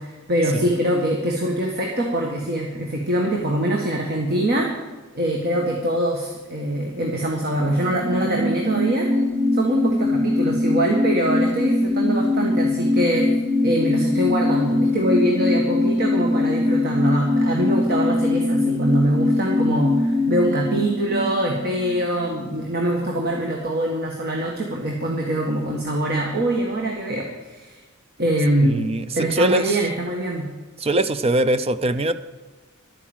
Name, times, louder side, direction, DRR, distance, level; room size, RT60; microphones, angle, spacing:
voice 1, 0.0-4.7 5.1-9.1 9.5-13.3 13.6-27.8 28.2-28.9 29.1-30.5, right 1 dB, 50° right, 0 dB, 1.6 m, -23 dB
sound 1, 7.7-22.7 23.0-23.1, left 2 dB, 65° right, 1.9 m, -22 dB
voice 2, 28.6-29.8 30.8-32.1, right 1 dB, 30° right, 11 dB, 0.5 m, -22 dB
12.0 x 9.6 x 7.2 m, 1.3 s
head